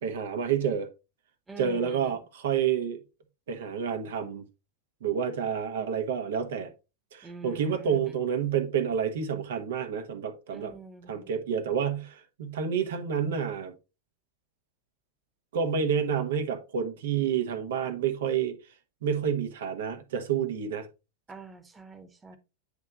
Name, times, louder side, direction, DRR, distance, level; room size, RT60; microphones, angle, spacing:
voice 1, 0.0-0.9 1.6-3.0 3.5-4.4 5.0-6.7 7.1-10.7 11.1-13.7 15.5-18.6 19.0-20.9, right 7 dB, 60° right, 1.1 m, -29 dB
voice 2, 1.5-2.2 7.2-8.2 10.5-11.3 21.3-22.4, right 4 dB, 15° right, 1.2 m, -45 dB
9.5 x 3.3 x 3.8 m
figure-of-eight pair, 90°, 0 cm